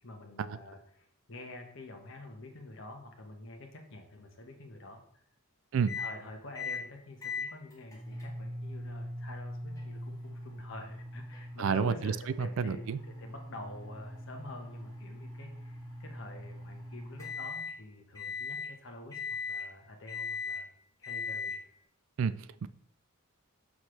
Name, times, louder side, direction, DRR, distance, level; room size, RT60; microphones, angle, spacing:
voice 1, 0.0-5.2 5.8-19.2 19.5-20.7 21.0-21.6, left 2 dB, 60° left, 1.2 m, -48 dB
sound 1, 5.9-6.1 6.5-6.8 7.2-17.7 18.1-18.7 19.1-19.7 20.1-20.6 21.0-21.6, left 3 dB, 15° left, 1.5 m, -40 dB
voice 2, 11.6-12.1 12.4-13.0 22.2-22.7, right 6 dB, 60° right, 0.3 m, -30 dB
6.3 x 5.8 x 3.3 m
head